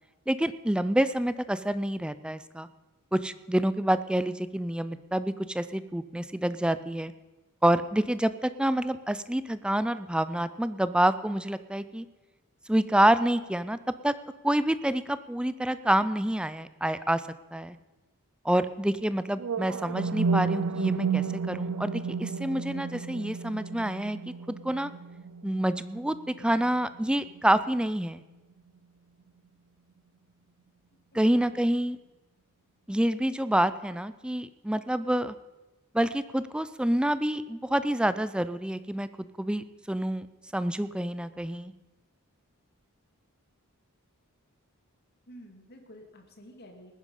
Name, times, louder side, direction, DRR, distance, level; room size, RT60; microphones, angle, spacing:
voice 1, 0.3-2.7 3.1-7.1 7.6-12.1 12.7-13.8 14.0-14.1 14.4-17.2 17.5-17.8 18.4-24.2 24.5-24.9 25.4-28.2 31.1-32.0 32.9-35.3 35.9-39.1 39.4-40.3 40.5-41.7, right 1 dB, 5° right, 14 dB, 0.4 m, -27 dB
sound 1, 19.4-27.4, right 5 dB, 75° right, 0.5 m, -32 dB
voice 2, 31.1-31.6 45.3-46.9, equal, 50° left, 4 dB, 2.2 m, -50 dB
19.5 x 9.9 x 5.4 m, 1.1 s
head